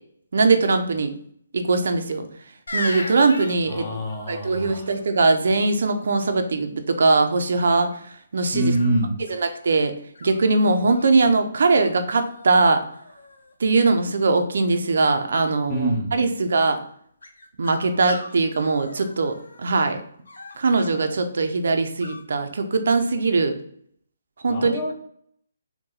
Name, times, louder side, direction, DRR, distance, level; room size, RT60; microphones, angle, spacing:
voice 1, 0.3-1.1 1.5-2.3 2.7-3.9 4.3-7.9 8.3-8.7 9.3-9.9 10.2-12.8 13.6-16.8 17.6-20.0 20.6-23.6 24.4-24.9, right 3 dB, 70° right, 7 dB, 0.5 m, -21 dB
sound 1, 2.7-4.4 7.6-8.0 8.7-9.6 10.1-11.1 11.8-11.9 12.2-12.7 12.9-13.5 17.2-19.7 20.2-21.1 22.0-22.2, left 2 dB, 90° left, 0.7 m, -37 dB
voice 2, 3.7-4.9 8.5-9.1 15.7-16.2 24.5-24.9, right 1 dB, 25° left, 0 dB, 0.9 m, -25 dB
4.1 x 2.2 x 3.8 m, 0.65 s
hypercardioid pair, 160°, 0 cm